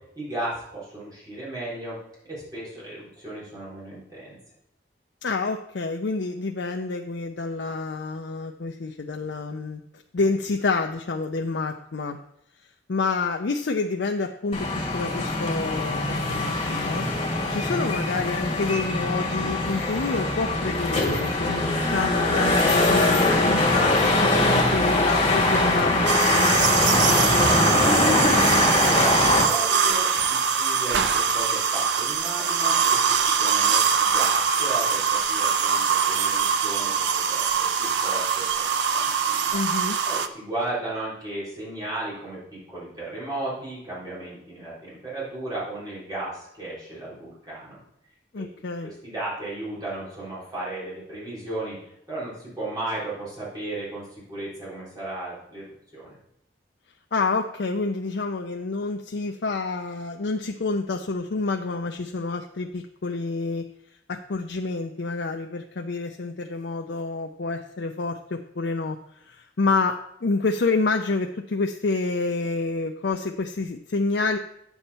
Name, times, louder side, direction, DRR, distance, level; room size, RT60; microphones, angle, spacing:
voice 1, 0.2-4.4 28.7-39.6 40.0-47.8 48.4-48.5 48.8-55.6 55.9-56.2, right 2 dB, 20° right, -8 dB, 3.9 m, -35 dB
voice 2, 5.2-9.8 10.1-12.2 12.9-14.7 14.9-17.1 17.5-27.0 39.5-40.0 48.3-48.9 57.1-63.7 64.1-74.4, left 3 dB, 70° left, 3 dB, 0.5 m, -28 dB
sound 1, 14.5-29.4, left 2 dB, 30° left, 2.2 m, -22 dB
sound 2, 26.1-40.3, right 6 dB, 70° right, 0.6 m, -23 dB
9.0 x 7.0 x 4.2 m, 0.77 s
head